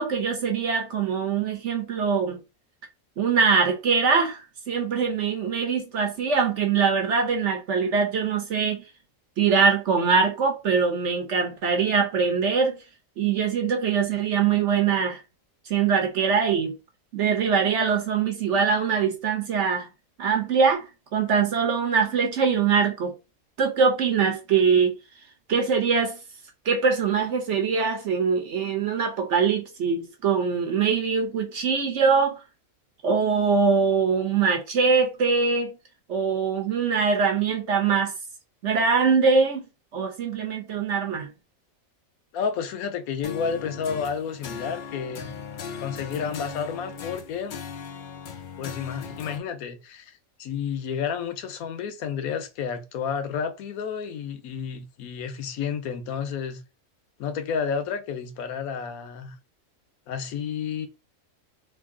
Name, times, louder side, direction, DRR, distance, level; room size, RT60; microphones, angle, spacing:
voice 1, 0.0-2.4 3.2-8.8 9.4-12.8 13.2-15.2 15.7-16.7 17.1-19.9 20.2-20.9 21.1-23.1 23.6-25.0 25.5-26.2 26.6-32.4 33.0-35.8 36.1-38.1 38.6-39.6 39.9-41.3, right 5 dB, 60° right, 1.0 m, -23 dB
voice 2, 42.3-47.6 48.6-56.6 57.2-59.3 60.1-60.9, left 6 dB, 85° left, 1.2 m, -31 dB
sound 1, 43.2-49.4, left 6 dB, 70° left, 0.4 m, -38 dB
3.1 x 2.6 x 3.6 m
omnidirectional pair, 1.5 m